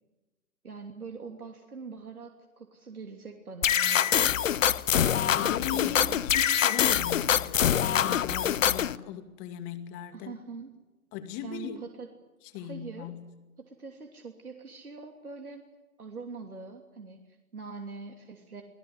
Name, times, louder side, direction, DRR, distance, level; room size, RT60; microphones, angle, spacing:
voice 1, 0.6-4.3 5.3-6.2 10.1-10.7 11.4-12.1 12.5-13.1 13.6-15.7 16.0-18.6, right 4 dB, 80° right, 3 dB, 3.1 m, -43 dB
sound 1, 3.6-9.0, left 9 dB, 60° left, 0.9 m, -25 dB
voice 2, 5.3-10.4 11.1-11.8 12.5-13.3, left 10 dB, 25° left, 9 dB, 2.2 m, -38 dB
25.5 x 16.5 x 9.9 m, 1.1 s
figure-of-eight pair, 130°, 43 cm